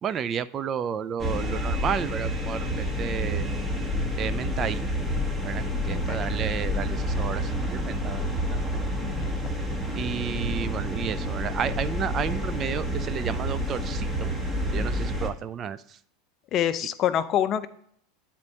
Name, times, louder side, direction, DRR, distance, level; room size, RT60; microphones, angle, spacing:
voice 1, 0.0-3.5 4.2-4.9 5.4-7.4 7.7-8.2 8.5-8.6 10.0-14.3 14.7-15.8, right 8 dB, 35° right, 14 dB, 0.4 m, -31 dB
sound 1, 1.2-15.3, equal, 10° right, 1.3 m, -29 dB
voice 2, 5.9-6.4 9.0-9.3 16.5-17.7, left 10 dB, 40° left, 13 dB, 0.5 m, -26 dB
9.6 x 4.4 x 4.0 m, 0.65 s
hypercardioid pair, 85°, 0 cm